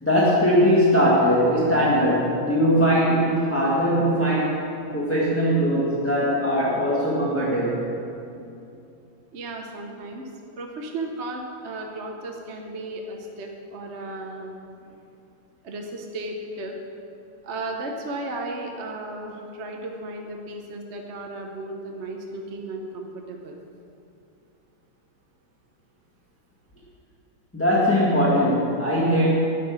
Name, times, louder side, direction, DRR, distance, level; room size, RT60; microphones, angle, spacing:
voice 1, 0.0-4.6 4.9-7.9 27.5-29.3, equal, 5° left, -7 dB, 1.6 m, -20 dB
voice 2, 9.3-10.2 10.6-14.5 15.6-16.8 17.1-17.2 17.4-23.6, right 2 dB, 45° right, 2 dB, 0.9 m, -34 dB
11.5 x 10.0 x 6.3 m, 2.6 s
omnidirectional pair, 2.2 m